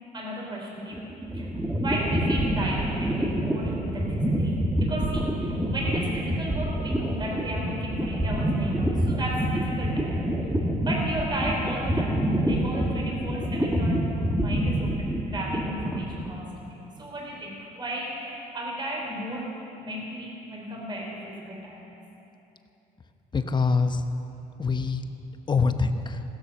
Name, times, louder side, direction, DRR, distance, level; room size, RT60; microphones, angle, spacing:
voice 1, 0.1-1.5 1.8-10.5 10.8-14.0 14.4-19.5 19.8-22.0, right 1 dB, 25° right, -2 dB, 3.3 m, -34 dB
sound 1, 0.9-16.4, right 1 dB, 10° right, 1.6 m, -27 dB
voice 2, 23.3-24.1 24.6-25.0 25.5-26.2, left 4 dB, 25° left, 8 dB, 0.9 m, -25 dB
16.0 x 11.0 x 7.1 m, 2.9 s
cardioid pair, 110°, 17 cm